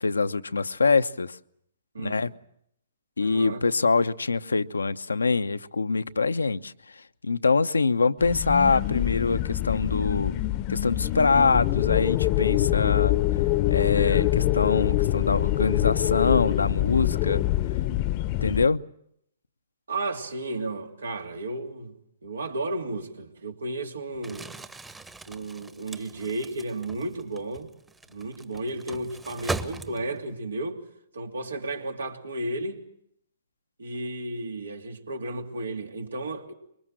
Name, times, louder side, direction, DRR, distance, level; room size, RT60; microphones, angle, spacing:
voice 1, 0.0-1.4 2.0-2.3 3.2-6.7 7.2-10.4 10.7-13.1 13.7-17.4 18.4-18.8, left 4 dB, 85° left, 0.9 m, -24 dB
voice 2, 1.9-2.3 3.2-3.6 19.9-21.9 22.2-24.5 25.3-27.7 28.1-30.8 31.1-32.8 33.8-36.5, right 2 dB, 80° right, 3.0 m, -33 dB
sound 1, 8.2-18.7, left 15 dB, 35° left, 0.9 m, -25 dB
Crumpling crinkling, 24.1-30.3, right 3 dB, 10° right, 1.2 m, -39 dB
25.0 x 23.0 x 7.7 m
figure-of-eight pair, 125°, 0 cm